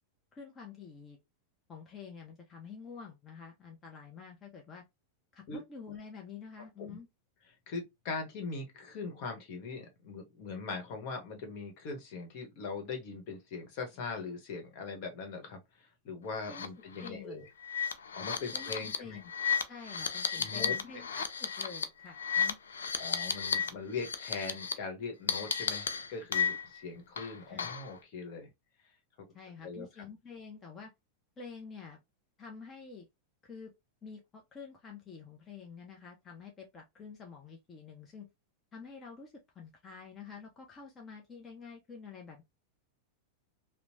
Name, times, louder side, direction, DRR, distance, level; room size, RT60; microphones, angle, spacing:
voice 1, 0.3-1.2 1.7-4.8 5.3-7.1 16.5-17.5 18.5-19.3 19.7-22.6 27.5-27.7 29.3-30.9 31.4-32.0 32.4-33.1 33.4-33.7 34.0-38.3 38.7-42.4, left 5 dB, 25° left, 0.7 m, -48 dB
voice 2, 7.7-17.4 18.2-19.2 20.3-20.7 22.9-28.5 29.6-29.9, left 4 dB, 55° left, 1.1 m, -41 dB
sound 1, 16.4-16.7 17.0-17.1 17.6-23.7 24.0-24.7 25.3-26.8 27.2-27.9, left 6 dB, 90° left, 0.4 m, -33 dB
3.0 x 2.1 x 2.6 m
hypercardioid pair, 110°, 0 cm